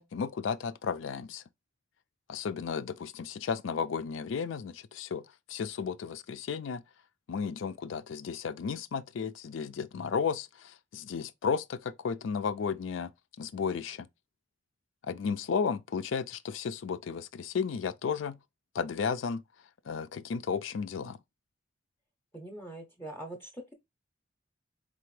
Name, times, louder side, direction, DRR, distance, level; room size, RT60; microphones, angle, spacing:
voice 1, 0.0-1.4 2.3-6.8 7.3-13.1 13.4-14.1 15.0-18.4 18.7-19.4 19.9-21.2, left 6 dB, 85° left, 0.4 m, -33 dB
voice 2, 22.3-23.7, right 1 dB, 10° left, 0.6 m, -43 dB
4.2 x 3.4 x 3.1 m
head